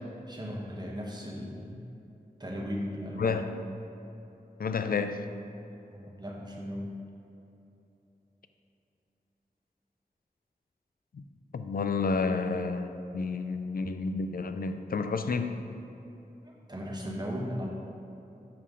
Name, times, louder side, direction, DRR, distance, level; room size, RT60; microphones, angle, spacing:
voice 1, 0.3-1.8 2.4-3.5 5.9-6.9 16.4-17.7, equal, 25° right, -3 dB, 1.1 m, -37 dB
voice 2, 3.2-3.5 4.6-5.3 11.1-11.2 11.5-15.8, left 4 dB, 65° left, 8 dB, 0.4 m, -30 dB
6.7 x 5.5 x 3.7 m, 2.9 s
wide cardioid pair, 60°, 16 cm